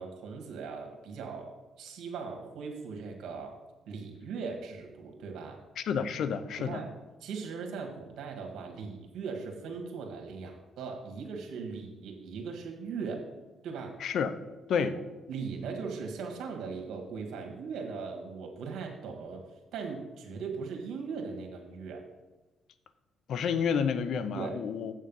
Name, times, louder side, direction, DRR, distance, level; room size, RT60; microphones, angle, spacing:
voice 1, 0.0-1.5 1.8-3.6 3.9-5.6 6.6-6.9 7.2-13.2 13.6-14.0 14.8-14.9 15.3-19.4 19.7-22.0 24.3-24.5, right 5 dB, 80° right, 3 dB, 1.6 m, -39 dB
voice 2, 5.8-6.8 14.0-14.3 14.7-14.9 23.3-24.9, left 7 dB, 70° left, 13 dB, 0.6 m, -30 dB
7.8 x 6.5 x 5.4 m, 1.1 s
cardioid pair, 90°, 0 cm